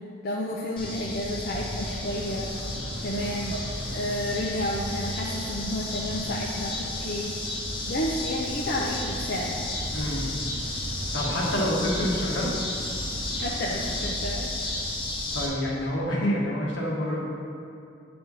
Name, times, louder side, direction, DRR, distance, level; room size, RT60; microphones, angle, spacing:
voice 1, 0.2-2.5 3.0-3.6 3.9-7.3 7.9-9.7 13.4-14.7, left 1 dB, 55° left, -3 dB, 0.5 m, -31 dB
sound 1, 0.8-15.5, left 1 dB, 25° left, 0.9 m, -32 dB
sound 2, 1.8-14.1, right 3 dB, 65° right, 0.5 m, -42 dB
voice 2, 9.9-10.3 11.1-12.5 15.3-17.2, left 1 dB, 80° left, -4 dB, 1.4 m, -27 dB
8.1 x 3.4 x 5.4 m, 2.4 s
head